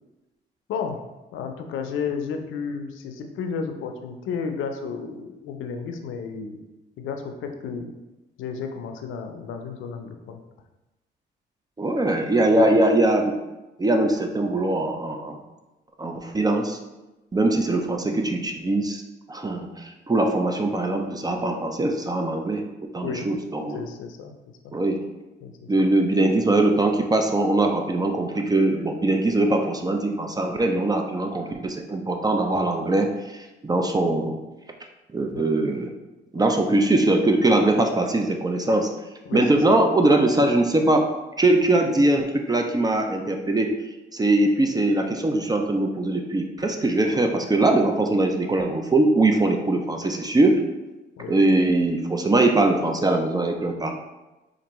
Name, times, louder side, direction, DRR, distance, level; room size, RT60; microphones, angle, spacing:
voice 1, 0.7-1.0 1.3-6.6 7.0-7.9 8.4-10.4 12.5-12.7 23.0-23.3 23.7-24.3 24.6-24.7 25.4-25.7 35.3-35.5 36.4-36.6 39.3-39.8 51.2-51.4, left 6 dB, 85° left, 5 dB, 0.5 m, -32 dB
voice 2, 11.8-13.4 13.8-15.4 16.0-16.8 17.3-19.0 19.3-22.6 22.9-23.8 24.7-25.0 25.7-34.4 35.1-35.9 36.3-38.9 39.3-41.1 41.4-43.8 44.1-50.6 51.3-53.9, right 2 dB, 20° right, 4 dB, 0.4 m, -21 dB
4.4 x 2.5 x 3.0 m, 1.0 s
cardioid pair, 90°, 20 cm